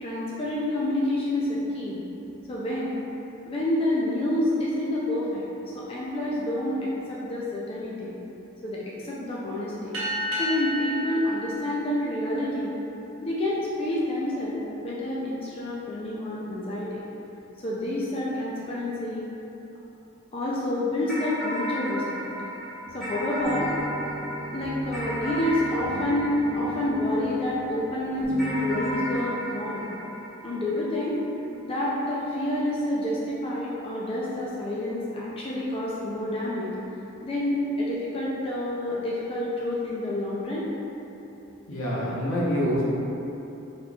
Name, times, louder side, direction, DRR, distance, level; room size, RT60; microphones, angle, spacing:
voice 1, 0.0-2.0 2.5-3.0 3.5-8.1 8.6-9.9 10.4-12.8 13.2-17.0 17.6-19.2 20.3-22.3 22.9-23.7 24.5-29.9 30.4-31.2 31.6-36.7 37.2-40.7, left 1 dB, 25° left, -6 dB, 0.4 m, -28 dB
sound 1, 9.9-12.9, equal, 80° right, 0.8 m, -32 dB
sound 2, 21.1-27.7 28.4-31.1, equal, ahead, 0.9 m, -34 dB
sound 3, 22.9-29.2, right 1 dB, 65° left, 1.2 m, -38 dB
voice 2, 41.7-42.8, equal, 85° left, -7 dB, 0.9 m, -26 dB
3.9 x 3.0 x 2.3 m, 3.0 s
head